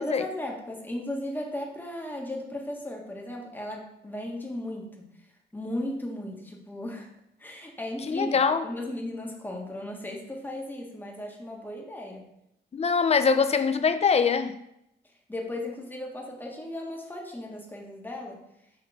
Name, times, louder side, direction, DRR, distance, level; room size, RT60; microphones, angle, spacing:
voice 1, 0.0-5.0 5.5-7.1 7.4-12.3 15.3-18.4, left 1 dB, 10° left, -1 dB, 1.6 m, -36 dB
voice 2, 8.1-8.6 12.7-14.5, left 5 dB, 30° left, 10 dB, 0.6 m, -23 dB
6.4 x 3.6 x 4.9 m, 0.80 s
cardioid pair, 90°, 20 cm